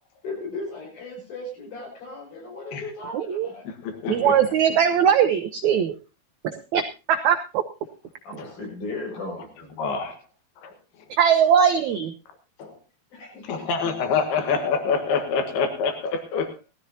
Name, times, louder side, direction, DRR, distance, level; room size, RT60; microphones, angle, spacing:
voice 1, 0.2-3.7 8.2-9.5 13.1-14.2, left 2 dB, 70° left, -1 dB, 8.0 m, -36 dB
voice 2, 3.1-3.5 4.1-5.9 6.7-7.6 11.1-12.1, right 8 dB, 85° right, 7 dB, 1.6 m, -20 dB
voice 3, 3.7-4.5 8.4-8.5 9.8-10.2 10.6-10.8 12.6-12.8 13.5-16.6, left 5 dB, 85° left, 6 dB, 3.5 m, -26 dB
19.0 x 14.0 x 2.8 m, 0.29 s
omnidirectional pair, 4.4 m